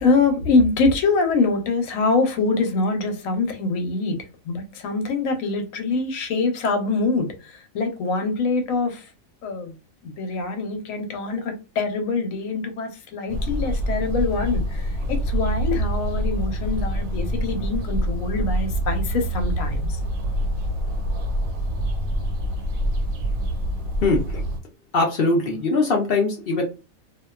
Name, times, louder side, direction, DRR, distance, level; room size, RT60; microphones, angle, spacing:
voice 1, 0.0-4.2 4.5-9.0 9.4-9.7 10.0-20.0, left 3 dB, 80° left, 1.1 m, -24 dB
sound 1, 13.3-24.6, equal, 80° right, 1.1 m, -26 dB
voice 2, 24.0-24.4 24.9-26.6, left 3 dB, 60° left, 0.6 m, -21 dB
2.6 x 2.2 x 2.2 m
omnidirectional pair, 1.4 m